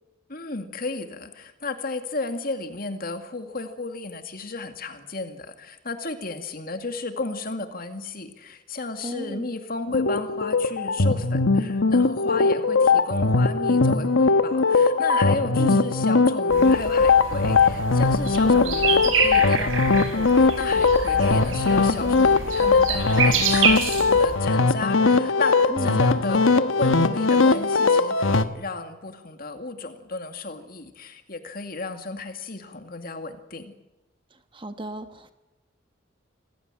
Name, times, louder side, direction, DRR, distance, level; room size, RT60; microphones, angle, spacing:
voice 1, 0.3-33.7, left 3 dB, 45° left, 7 dB, 2.3 m, -33 dB
voice 2, 9.0-9.4 15.6-15.8 25.7-26.0 34.5-35.3, right 1 dB, 25° right, 9 dB, 1.2 m, -33 dB
sound 1, 9.9-28.4, left 4 dB, 80° left, 1.2 m, -20 dB
sound 2, 16.5-24.3, right 5 dB, 75° right, 5.4 m, -27 dB
26.5 x 16.0 x 9.0 m, 1.0 s
head